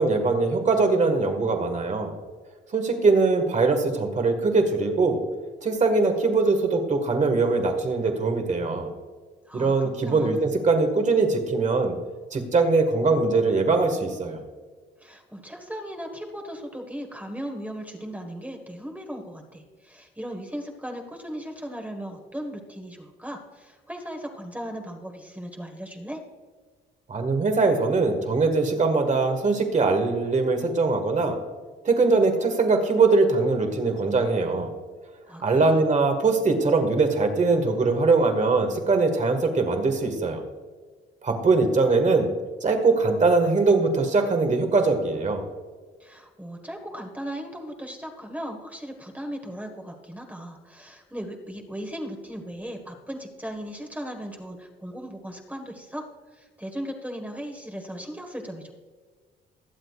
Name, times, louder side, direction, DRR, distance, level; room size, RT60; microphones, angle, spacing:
voice 1, 0.0-2.1 2.7-5.2 5.6-8.9 9.5-12.0 12.3-14.4 27.1-31.4 31.8-34.7 35.4-40.4 41.2-42.3 42.6-45.4, right 3 dB, 35° right, 6 dB, 1.7 m, -22 dB
voice 2, 9.5-10.4 15.0-26.2 35.3-35.8 46.0-56.0 56.3-58.7, equal, 5° right, 3 dB, 1.5 m, -37 dB
21.0 x 7.7 x 2.4 m, 1.5 s
cardioid pair, 90°, 20 cm